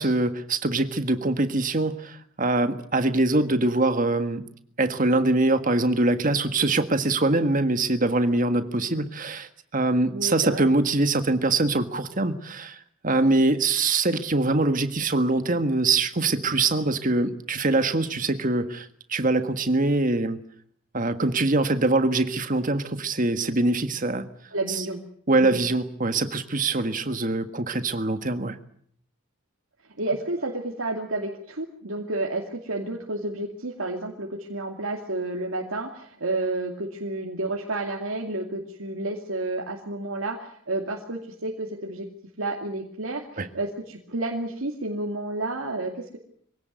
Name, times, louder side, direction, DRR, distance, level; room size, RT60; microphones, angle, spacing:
voice 1, 0.0-4.4 4.8-20.4 20.9-24.3 24.7-24.8 25.3-28.6 43.4-43.5, right 2 dB, 40° right, 1.7 m, -23 dB
voice 2, 10.1-10.7 24.5-25.0 25.4-25.6 30.0-42.1 42.4-46.2, right 2 dB, 80° right, 2.6 m, -31 dB
24.0 x 17.0 x 9.3 m
head